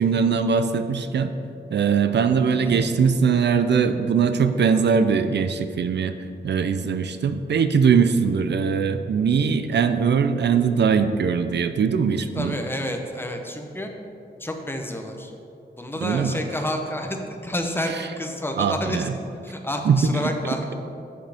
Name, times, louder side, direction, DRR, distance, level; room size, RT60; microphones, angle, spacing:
voice 1, 0.0-1.3 1.7-6.1 6.4-12.5 16.0-16.3 18.6-19.0 19.9-20.0, right 6 dB, 75° right, 9 dB, 0.4 m, -21 dB
voice 2, 12.3-13.9 14.4-15.3 15.8-19.1 19.4-20.7, equal, 10° left, 3 dB, 0.7 m, -29 dB
8.3 x 7.6 x 3.5 m, 2.7 s
wide cardioid pair, 110°, 18 cm